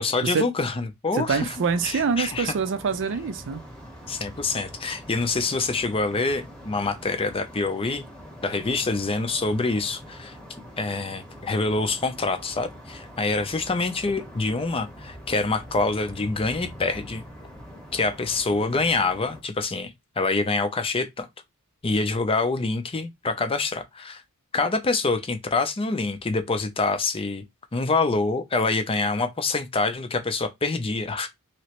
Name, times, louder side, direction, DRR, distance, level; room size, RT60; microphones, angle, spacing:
voice 1, 0.0-1.5 1.8-2.5 4.1-8.0 8.4-10.3 10.8-17.2 17.9-21.3 21.8-24.2 24.5-27.4 27.7-31.3, left 3 dB, 25° left, 0.5 m, -26 dB
voice 2, 1.1-3.6, right 5 dB, 55° right, 0.5 m, -25 dB
sound 1, 1.3-19.4, equal, 5° left, 1.0 m, -44 dB
3.1 x 2.9 x 2.9 m
head